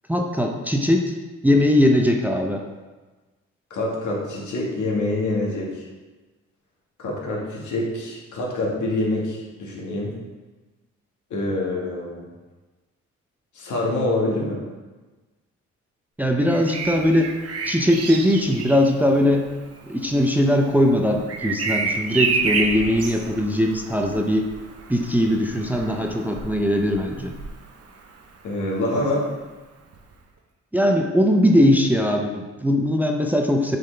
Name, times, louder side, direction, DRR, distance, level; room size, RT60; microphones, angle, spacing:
voice 1, 0.1-1.1 1.4-2.6 16.2-17.3 17.6-19.5 19.9-24.5 24.9-27.4 30.7-33.8, left 1 dB, 5° right, 2 dB, 0.5 m, -20 dB
voice 2, 3.7-5.9 7.0-10.2 11.3-12.3 13.5-14.6 28.4-29.3, left 2 dB, 75° left, -3 dB, 1.7 m, -26 dB
Bird vocalization bird call bird song, 16.4-28.2 29.9-30.1, right 4 dB, 55° right, 0.9 m, -30 dB
7.4 x 4.0 x 3.3 m, 1.3 s
cardioid pair, 90°, 30 cm